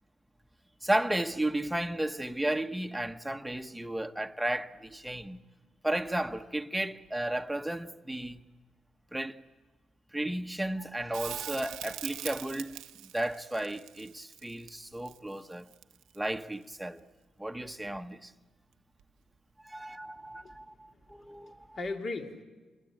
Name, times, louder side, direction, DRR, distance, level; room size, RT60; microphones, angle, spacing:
voice 1, 0.8-5.4 5.8-8.4 9.1-9.4 10.1-12.8 13.1-15.7 16.1-17.0 17.4-18.3 19.6-21.8, right 1 dB, 5° right, 1.1 m, -33 dB
Crackle, 11.1-16.3 19.0-19.1, right 13 dB, 90° right, 0.8 m, -42 dB
voice 2, 20.3-22.4, left 3 dB, 50° left, 2.6 m, -40 dB
28.5 x 22.0 x 9.0 m
cardioid pair, 90°, 0 cm